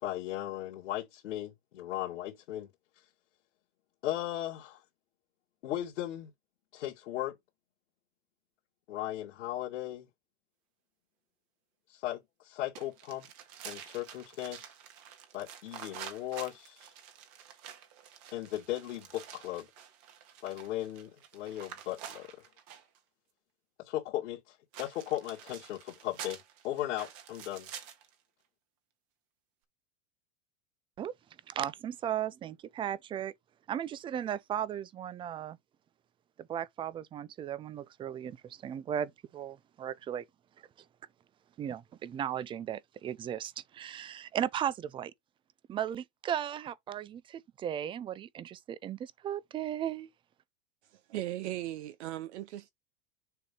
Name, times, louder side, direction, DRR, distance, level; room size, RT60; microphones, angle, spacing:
voice 1, 0.0-2.7 4.0-4.8 5.6-6.3 6.7-7.4 8.9-10.1 11.9-13.3 13.6-14.7 15.3-16.9 18.3-19.7 20.4-22.3 23.8-27.7, left 14 dB, 85° left, 2.3 m, -37 dB
sound 1, 12.7-23.0 24.7-28.1, right 9 dB, 50° right, 1.6 m, -48 dB
voice 2, 31.5-33.3 33.7-35.6 36.4-40.3 41.6-45.1 45.7-50.1, right 10 dB, 15° right, 0.3 m, -36 dB
voice 3, 50.9-52.7, right 14 dB, 70° right, 0.7 m, -38 dB
6.8 x 2.7 x 5.4 m
supercardioid pair, 125°, 35 cm